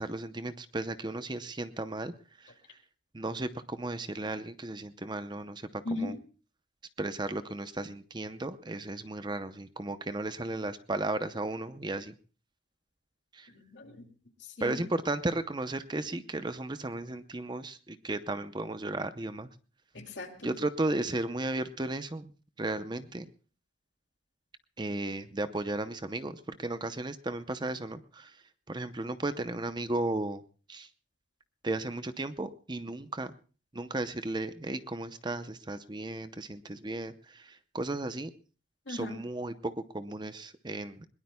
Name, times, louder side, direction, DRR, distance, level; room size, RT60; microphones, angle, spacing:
voice 1, 0.0-2.8 3.1-6.2 7.0-12.2 13.3-13.5 14.6-19.5 20.4-22.3 22.6-23.3 24.8-28.4 28.7-30.4 30.7-30.9 31.6-33.3 33.7-38.3 38.9-41.1, right 2 dB, 25° right, 11 dB, 0.7 m, -35 dB
voice 2, 5.8-6.2 13.5-14.0 14.4-14.8 19.9-20.5 38.9-39.2, left 2 dB, 70° left, 3 dB, 2.5 m, -38 dB
21.5 x 20.5 x 2.3 m, 0.37 s
head